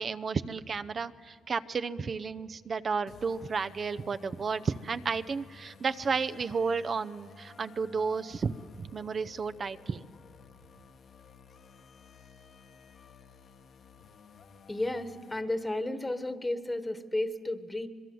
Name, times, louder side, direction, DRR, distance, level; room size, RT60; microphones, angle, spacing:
voice 1, 0.0-10.0, right 5 dB, 45° right, 10 dB, 0.7 m, -32 dB
sound 1, 3.1-15.4, left 5 dB, 60° left, 1.5 m, -55 dB
voice 2, 14.7-17.9, left 1 dB, 15° left, 9 dB, 1.4 m, -33 dB
26.0 x 21.0 x 7.8 m, 2.1 s
cardioid pair, 90°, 0 cm